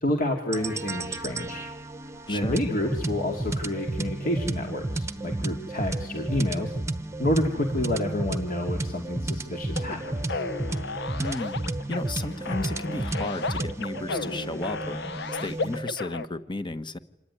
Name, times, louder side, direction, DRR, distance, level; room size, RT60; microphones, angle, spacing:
voice 1, 0.0-1.7 2.3-6.7 7.2-10.4, left 1 dB, 50° left, 2 dB, 2.5 m, -29 dB
sound 1, 0.5-15.9, right 2 dB, 15° right, 1.1 m, -32 dB
voice 2, 2.3-2.6 11.2-11.6 11.9-15.0 15.4-17.0, left 2 dB, 25° left, 12 dB, 1.2 m, -33 dB
sound 2, 9.8-16.3, left 3 dB, 65° left, 1.1 m, -34 dB
27.0 x 19.5 x 10.0 m, 0.96 s
head